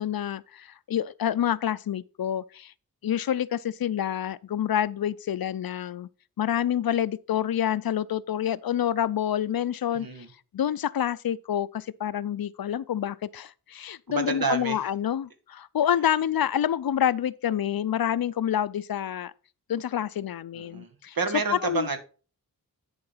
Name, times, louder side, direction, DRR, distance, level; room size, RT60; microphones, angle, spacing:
voice 1, 0.0-2.7 3.0-6.1 6.4-10.1 10.5-19.3 19.7-21.2 21.6-21.9, left 10 dB, 75° left, 0.5 m, -28 dB
voice 2, 9.9-10.3 14.1-14.8 20.5-22.0, right 4 dB, 75° right, 1.7 m, -29 dB
10.5 x 3.9 x 5.6 m
wide cardioid pair, 95°, 36 cm